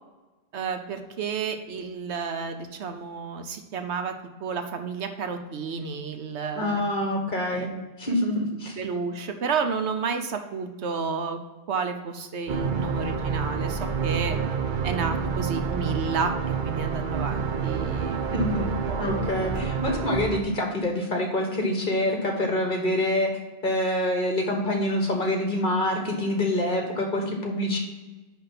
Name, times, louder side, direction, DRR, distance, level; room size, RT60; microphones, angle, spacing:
voice 1, 0.5-4.1 4.4-6.8 7.5-7.7 8.0-8.1 8.8-11.4 11.7-14.4 14.8-19.1, right 5 dB, 75° right, 7 dB, 1.1 m, -31 dB
voice 2, 6.5-7.7 8.0-8.7 18.3-18.7 19.0-23.3 23.6-27.8, left 1 dB, 45° left, 1 dB, 1.7 m, -26 dB
sound 1, 12.5-20.4, right 6 dB, 50° right, 0.7 m, -28 dB
10.5 x 3.6 x 5.7 m, 1.2 s
omnidirectional pair, 1.2 m